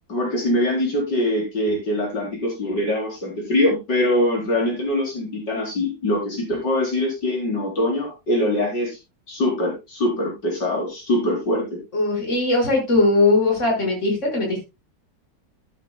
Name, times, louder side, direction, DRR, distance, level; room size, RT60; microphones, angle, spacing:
voice 1, 0.1-9.0 9.3-11.8, left 1 dB, 70° left, -2 dB, 4.9 m, -23 dB
voice 2, 11.9-14.6, left 2 dB, 40° left, 0 dB, 6.1 m, -19 dB
13.5 x 10.5 x 2.3 m, 0.25 s
omnidirectional pair, 2.0 m